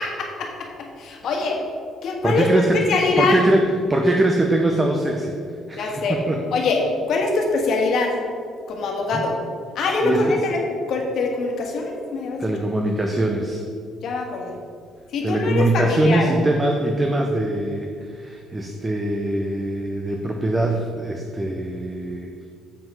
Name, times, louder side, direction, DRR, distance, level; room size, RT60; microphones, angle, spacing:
voice 1, 0.0-1.6 2.0-2.5 2.7-3.4 5.8-6.2 6.5-8.1 8.7-9.4 9.7-10.6 10.9-12.5 14.0-14.5 15.1-16.3, left 3 dB, 60° left, 1 dB, 1.5 m, -23 dB
voice 2, 2.2-2.8 3.2-5.4 5.7-6.4 9.1-9.2 10.0-10.4 12.4-13.6 15.2-22.5, right 1 dB, 15° right, 2 dB, 0.6 m, -22 dB
7.7 x 5.1 x 5.5 m, 2.2 s
cardioid pair, 145°, 0 cm